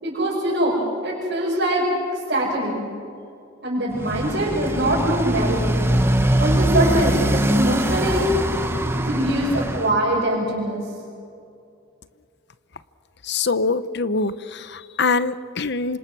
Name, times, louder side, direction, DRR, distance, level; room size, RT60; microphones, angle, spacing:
voice 1, 0.0-1.8 2.3-2.9 3.6-5.8 6.4-8.3 8.8-10.8, right 1 dB, 55° right, -6 dB, 5.8 m, -23 dB
Motorcycle, 3.9-9.9, right 1 dB, 10° right, 1.3 m, -22 dB
voice 2, 13.3-16.0, left 4 dB, 60° left, 13 dB, 0.9 m, -24 dB
28.0 x 26.0 x 6.2 m, 2.5 s
head